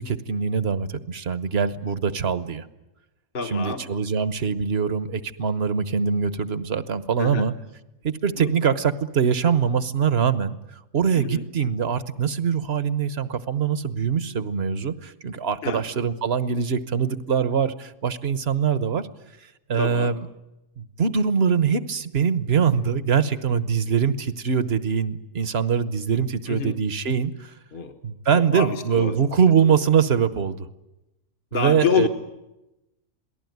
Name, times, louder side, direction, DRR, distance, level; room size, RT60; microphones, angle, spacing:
voice 1, 0.0-2.7 3.5-7.5 8.0-10.6 10.9-19.1 19.7-20.3 20.8-27.5 28.0-30.7 31.5-32.1, right 6 dB, 55° right, 13 dB, 1.3 m, -23 dB
voice 2, 3.3-3.9 7.2-7.5 8.4-8.5 11.1-11.4 15.6-15.9 19.8-20.1 26.5-26.8 27.7-28.0 28.4-29.2 31.5-32.1, left 6 dB, 45° left, 4 dB, 1.4 m, -27 dB
27.5 x 18.5 x 9.4 m, 0.97 s
omnidirectional pair, 1.3 m